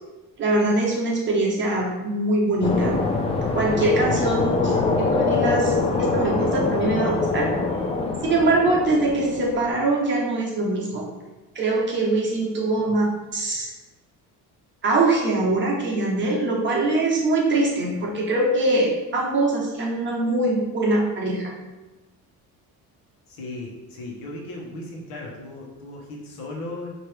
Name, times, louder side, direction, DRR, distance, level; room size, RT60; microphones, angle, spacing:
voice 1, 0.4-3.0 3.4-7.5 8.2-11.1 11.5-13.0 13.3-13.7 14.8-21.5, right 2 dB, 35° right, -2 dB, 0.9 m, -23 dB
sound 1, 2.6-9.7, left 3 dB, 20° left, 0.3 m, -24 dB
voice 2, 23.3-26.9, left 2 dB, 80° left, -1 dB, 1.2 m, -36 dB
4.6 x 2.8 x 3.3 m, 1.1 s
cardioid pair, 140°, 34 cm